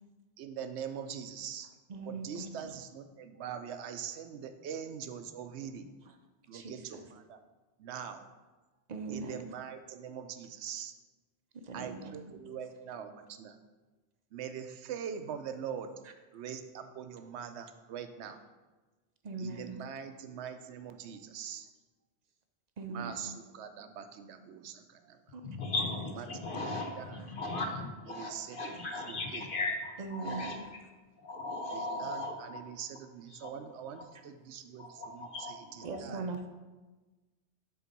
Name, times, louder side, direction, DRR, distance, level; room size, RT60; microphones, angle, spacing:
voice 1, 0.4-1.7 2.1-5.9 6.5-7.4 7.8-8.3 9.1-10.9 11.7-13.6 14.3-15.9 16.3-18.4 19.4-21.7 22.9-25.3 26.2-26.6 27.0-27.2 27.7-29.5 31.7-36.2, right 8 dB, 80° right, 9 dB, 0.9 m, -43 dB
voice 2, 1.9-2.7 6.0-6.2 6.5-7.0 8.9-9.5 11.5-12.4 16.0-16.1 19.2-19.8 22.8-23.2 25.3-25.5 27.2-27.3 30.0-30.7 35.8-36.5, right 3 dB, 45° right, 6 dB, 0.6 m, -41 dB
voice 3, 25.4-30.5 31.2-32.6 33.3-33.5 34.0-34.1 34.8-35.9, left 2 dB, 55° left, 3 dB, 0.9 m, -37 dB
7.2 x 3.9 x 5.2 m, 1.2 s
omnidirectional pair, 1.1 m